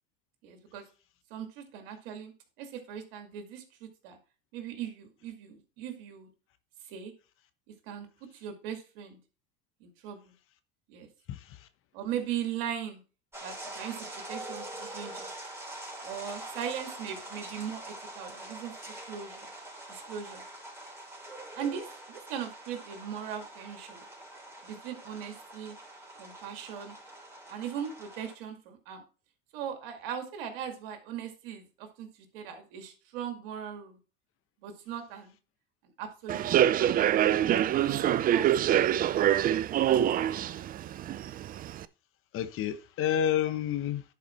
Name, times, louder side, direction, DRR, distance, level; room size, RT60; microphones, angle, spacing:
voice 1, 0.4-0.8 1.3-2.3 2.6-4.2 4.5-6.3 6.9-7.1 7.7-8.1 8.3-9.2 9.8-10.3 10.9-11.1 11.9-13.0 13.4-15.3 16.0-19.5 19.9-20.4 21.5-24.0 24.6-25.8 26.2-26.9 27.5-29.0 29.5-32.1 32.3-34.0 34.6-35.3 36.0-37.0 37.7-38.8 39.9-40.5, right 8 dB, 70° right, 2.3 m, -39 dB
voice 2, 11.3-11.7 42.3-44.0, left 10 dB, 45° left, 1.2 m, -29 dB
sound 1, 13.3-28.3, right 1 dB, 10° right, 3.4 m, -44 dB
Human voice / Subway metro underground, 36.3-41.8, right 11 dB, 30° right, 0.5 m, -25 dB
11.0 x 4.8 x 4.5 m
hypercardioid pair, 100°, 29 cm